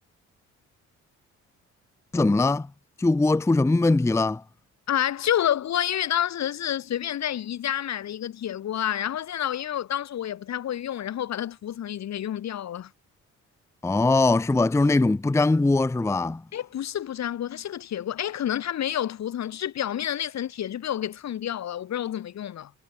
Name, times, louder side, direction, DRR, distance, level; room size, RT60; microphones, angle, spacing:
voice 1, 2.1-2.7 3.0-4.4 13.8-16.4, left 2 dB, 10° left, 0.6 m, -21 dB
voice 2, 4.9-12.9 16.5-22.7, left 10 dB, 60° left, 1.9 m, -29 dB
cardioid pair, 90°, 30 cm